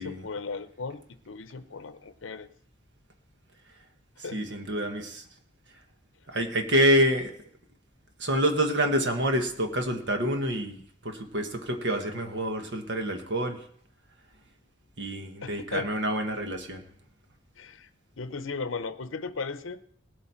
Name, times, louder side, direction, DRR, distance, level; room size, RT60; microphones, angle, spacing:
voice 1, 0.0-2.5 4.2-4.4 15.4-15.9 17.6-17.9 18.2-19.9, left 4 dB, 85° left, 12 dB, 0.7 m, -36 dB
voice 2, 4.3-5.3 6.3-7.3 8.2-13.6 15.0-16.8, equal, 60° right, 5 dB, 1.4 m, -27 dB
19.0 x 8.1 x 4.4 m, 0.63 s
head